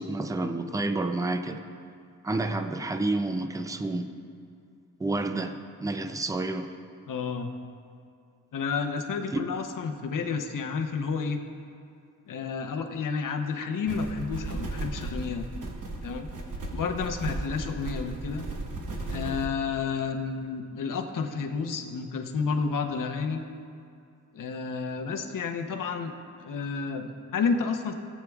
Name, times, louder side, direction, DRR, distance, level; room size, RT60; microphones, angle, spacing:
voice 1, 0.0-1.6 2.2-4.1 5.0-6.7 9.3-9.4, right 2 dB, 10° right, 7 dB, 0.4 m, -29 dB
voice 2, 7.1-7.5 8.5-11.4 12.3-15.4 16.0-16.3 16.7-18.4 19.1-23.4 24.3-26.1 26.4-27.9, left 5 dB, 70° left, 5 dB, 0.8 m, -30 dB
sound 1, 13.9-19.5, right 2 dB, 70° right, 1.2 m, -35 dB
18.0 x 8.4 x 2.3 m, 2.5 s
wide cardioid pair, 165°, 33 cm